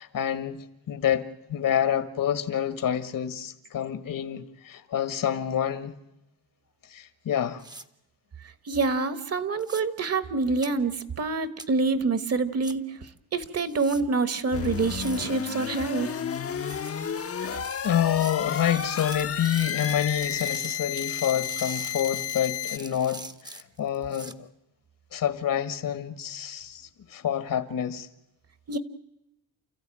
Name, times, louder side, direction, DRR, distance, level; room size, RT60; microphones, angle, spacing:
voice 1, 0.0-6.0 6.9-7.6 17.8-24.5 25.1-28.1, left 9 dB, 60° left, 1.6 m, -28 dB
sound 1, 7.6-7.8 9.6-9.8 10.6-10.7 11.6-11.7 12.6-12.7 13.7-14.0 14.6-15.3 16.6-16.9 17.6-24.3, right 2 dB, 10° right, 0.9 m, -42 dB
voice 2, 8.6-13.0 13.3-16.1 17.4-17.5 28.7-28.8, right 4 dB, 40° right, 1.3 m, -26 dB
sound 2, 14.5-22.8, left 8 dB, 35° left, 0.9 m, -32 dB
29.5 x 15.0 x 9.0 m
wide cardioid pair, 155°, 39 cm